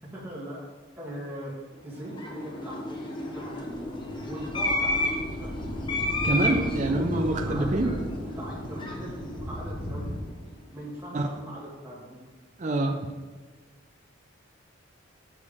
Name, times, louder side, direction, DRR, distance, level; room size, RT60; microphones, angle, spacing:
voice 1, 0.1-0.7 1.0-5.8 6.5-10.3 10.7-12.2, right 1 dB, 10° right, -6 dB, 2.0 m, -40 dB
sound 1, 1.8-10.4, left 1 dB, 25° left, 0.8 m, -32 dB
sound 2, 3.3-10.2, left 1 dB, 80° left, 2.2 m, -37 dB
voice 2, 6.2-8.0 11.1-11.3 12.6-13.1, right 2 dB, 35° right, 3 dB, 0.5 m, -26 dB
7.3 x 6.3 x 3.6 m, 1.5 s
head